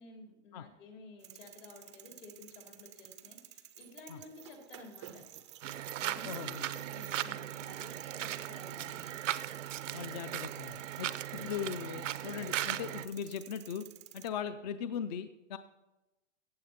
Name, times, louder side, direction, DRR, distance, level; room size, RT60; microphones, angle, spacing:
voice 1, 0.0-5.2 6.0-9.1 11.3-11.7, left 3 dB, 75° left, 1 dB, 3.8 m, -53 dB
sound 1, 1.2-14.3, right 12 dB, 25° right, 0.4 m, -52 dB
sound 2, 5.6-13.1, right 12 dB, 85° right, 0.7 m, -38 dB
voice 2, 6.2-6.6 9.9-13.9 14.1-15.6, left 8 dB, 35° left, 11 dB, 0.4 m, -39 dB
15.0 x 8.5 x 4.3 m, 1.0 s
hypercardioid pair, 155°, 37 cm